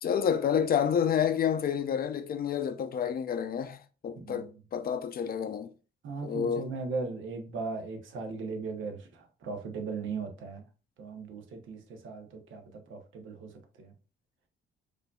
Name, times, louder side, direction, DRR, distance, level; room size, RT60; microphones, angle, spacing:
voice 1, 0.0-5.7 6.2-6.7, left 8 dB, 50° left, 0.5 m, -29 dB
voice 2, 4.1-4.6 6.0-10.7 11.0-13.9, right 4 dB, 75° right, 0.9 m, -38 dB
4.9 x 2.6 x 2.3 m
cardioid pair, 90°, 20 cm